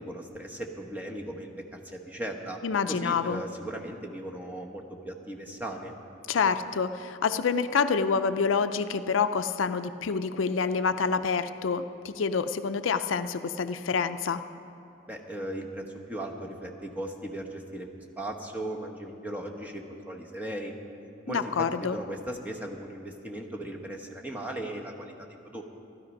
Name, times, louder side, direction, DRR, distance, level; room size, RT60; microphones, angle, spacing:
voice 1, 0.0-2.6 2.9-5.9 15.1-20.7 21.3-25.6, right 1 dB, 10° right, 0 dB, 1.0 m, -37 dB
voice 2, 2.6-3.4 6.3-14.4 21.3-22.0, left 5 dB, 90° left, 11 dB, 0.5 m, -27 dB
13.5 x 12.5 x 5.3 m, 2.7 s
head